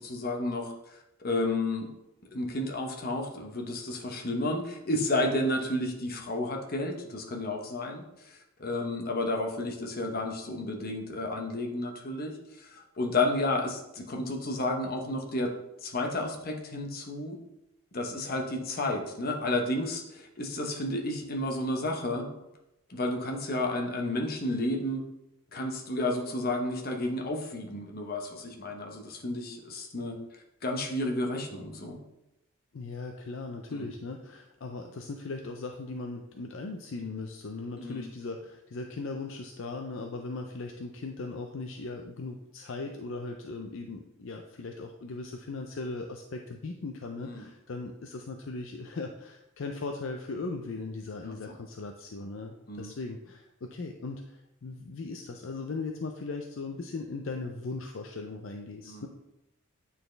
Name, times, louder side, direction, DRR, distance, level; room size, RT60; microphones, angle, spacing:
voice 1, 0.0-1.9 2.3-15.5 15.8-17.4 17.9-22.3 22.9-25.0 25.5-30.2 30.6-32.0 33.7-33.9 37.8-38.0 47.2-47.4 51.2-51.5 52.7-52.9 58.8-59.1, left 2 dB, 45° left, 2 dB, 0.9 m, -32 dB
voice 2, 32.7-59.1, left 3 dB, 60° left, 3 dB, 0.5 m, -38 dB
9.0 x 4.2 x 3.3 m, 0.89 s
head